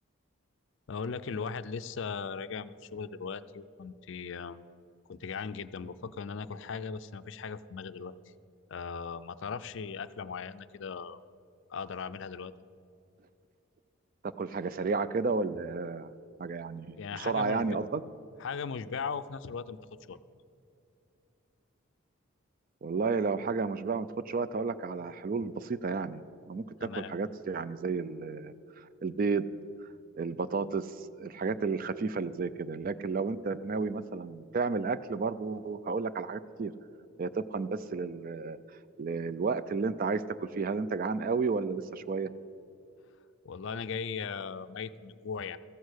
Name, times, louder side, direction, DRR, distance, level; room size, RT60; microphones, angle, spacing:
voice 1, 0.9-4.6 5.1-8.3 8.7-11.2 11.7-12.5 16.9-17.7 18.4-19.8 20.1-20.2 26.8-27.2 43.4-45.6, left 5 dB, 60° left, 13 dB, 0.4 m, -38 dB
voice 2, 14.2-16.1 16.4-18.0 22.8-26.2 26.5-29.4 30.1-36.7 37.2-38.6 39.0-42.3, right 4 dB, 40° right, 14 dB, 0.3 m, -32 dB
14.5 x 8.3 x 6.3 m, 2.6 s
head